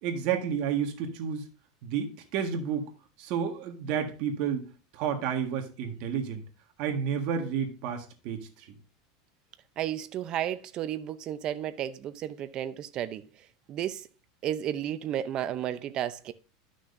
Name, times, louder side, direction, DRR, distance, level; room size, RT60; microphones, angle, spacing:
voice 1, 0.0-1.4 1.8-2.9 3.2-4.7 4.9-6.4 6.8-8.5, right 7 dB, 55° right, 1.7 m, -30 dB
voice 2, 9.8-13.2 13.7-14.1 14.4-16.3, right 11 dB, 40° right, 0.6 m, -33 dB
11.5 x 6.2 x 2.6 m
supercardioid pair, 135°, 2 cm